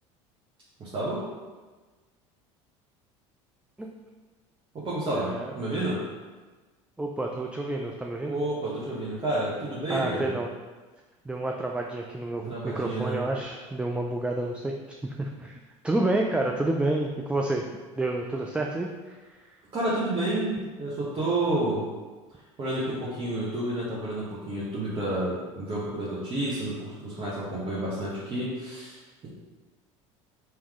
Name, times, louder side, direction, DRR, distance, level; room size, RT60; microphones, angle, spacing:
voice 1, 0.8-1.2 4.7-6.0 8.2-10.3 12.4-13.2 19.7-21.8 22.6-29.3, right 1 dB, 35° right, -8 dB, 1.1 m, -30 dB
voice 2, 5.2-5.6 7.0-8.4 9.9-10.5 11.3-14.7 15.0-15.6 15.8-17.6 17.9-19.4, right 2 dB, 5° right, 1 dB, 0.3 m, -29 dB
3.6 x 3.0 x 3.6 m, 1.3 s
hypercardioid pair, 80°, 16 cm